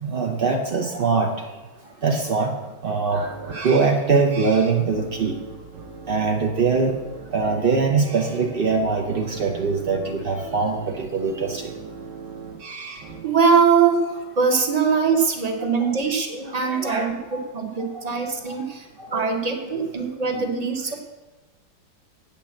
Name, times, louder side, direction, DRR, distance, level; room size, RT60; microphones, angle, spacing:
voice 1, 0.0-1.3 2.0-2.5 2.8-5.3 6.1-6.9 7.3-11.6 15.6-15.7 16.6-17.1 19.1-19.3, right 4 dB, 75° right, 2 dB, 0.5 m, -22 dB
sound 1, 3.1-13.2, right 4 dB, 45° right, 1.2 m, -39 dB
voice 2, 13.2-21.0, right 5 dB, 30° right, 4 dB, 0.7 m, -22 dB
8.7 x 5.8 x 7.1 m, 1.2 s
omnidirectional pair, 2.2 m